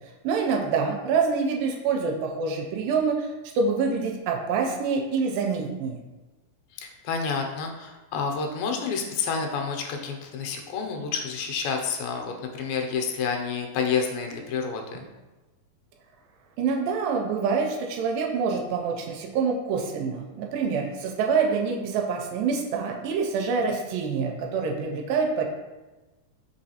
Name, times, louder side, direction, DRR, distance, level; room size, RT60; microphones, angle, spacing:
voice 1, 0.2-6.0 16.6-25.5, right 5 dB, 80° right, 1 dB, 2.1 m, -26 dB
voice 2, 6.7-15.0, left 5 dB, 85° left, 3 dB, 2.4 m, -29 dB
5.2 x 3.0 x 2.8 m, 1.1 s
omnidirectional pair, 4.0 m